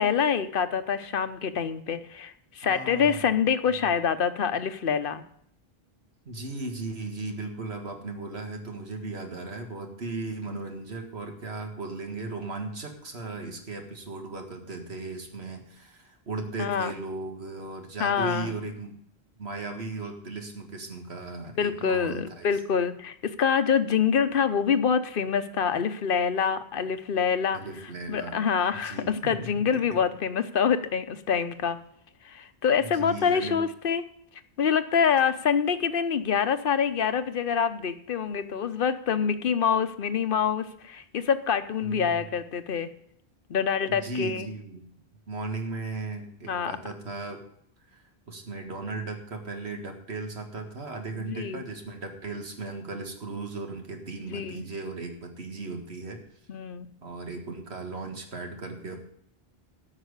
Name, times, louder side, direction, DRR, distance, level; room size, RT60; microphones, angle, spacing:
voice 1, 0.0-5.2 16.6-16.9 18.0-18.5 21.6-27.6 28.1-31.8 32.2-34.0 34.6-42.9 43.5-44.5 46.5-46.7 51.2-51.6 54.3-54.6 56.5-56.9, left 7 dB, 60° left, 11 dB, 1.0 m, -26 dB
voice 2, 2.6-3.2 6.3-18.9 19.4-22.5 27.5-28.4 28.7-30.0 32.8-33.6 41.8-42.3 43.9-44.9 45.3-47.4 47.9-56.2 57.0-59.0, right 3 dB, 85° right, 3 dB, 2.1 m, -37 dB
12.5 x 6.0 x 8.2 m, 0.69 s
omnidirectional pair, 1.0 m